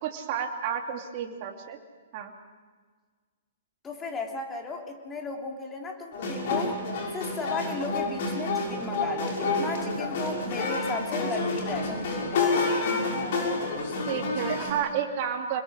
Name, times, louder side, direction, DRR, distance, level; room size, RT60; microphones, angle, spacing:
voice 1, 0.0-1.8 2.1-2.3 14.1-15.6, right 8 dB, 40° right, 2 dB, 2.7 m, -31 dB
voice 2, 3.8-6.8 7.1-12.9, left 3 dB, 15° left, 2 dB, 3.3 m, -35 dB
sound 1, 6.1-14.7, left 3 dB, 55° left, 6.5 m, -29 dB
27.0 x 21.5 x 6.5 m, 1.5 s
figure-of-eight pair, 120°, 0 cm